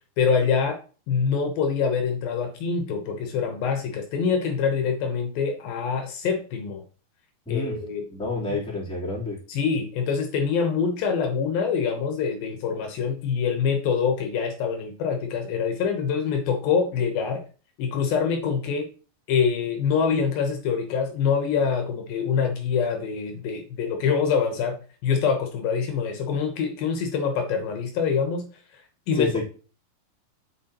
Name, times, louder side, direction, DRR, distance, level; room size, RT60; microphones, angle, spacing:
voice 1, 0.2-0.8 1.1-6.8 7.5-8.0 9.5-17.4 17.8-18.9 19.3-24.8 25.0-28.4 28.7-29.4, left 6 dB, 75° left, 4 dB, 2.7 m, -25 dB
voice 2, 7.4-7.8 8.1-9.4 29.1-29.4, left 3 dB, ahead, -6 dB, 2.5 m, -28 dB
9.0 x 7.6 x 2.9 m, 0.38 s
omnidirectional pair, 4.5 m